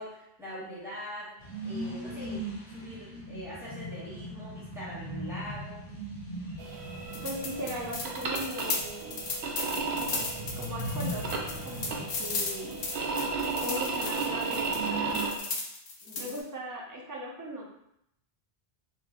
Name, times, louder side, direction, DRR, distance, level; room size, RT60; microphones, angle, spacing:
voice 1, 0.0-5.8 16.0-16.4, equal, ahead, -10 dB, 1.2 m, -43 dB
sound 1, 1.4-15.3, right 1 dB, 35° left, 0.6 m, -40 dB
sound 2, 6.6-15.4, right 4 dB, 80° right, 0.8 m, -34 dB
sound 3, 7.1-16.4, left 4 dB, 70° left, 0.8 m, -36 dB
voice 2, 7.2-9.2 9.9-12.9 13.6-15.5 16.2-17.7, right 1 dB, 25° right, -4 dB, 0.5 m, -39 dB
2.7 x 2.1 x 3.5 m, 0.79 s
omnidirectional pair, 1.1 m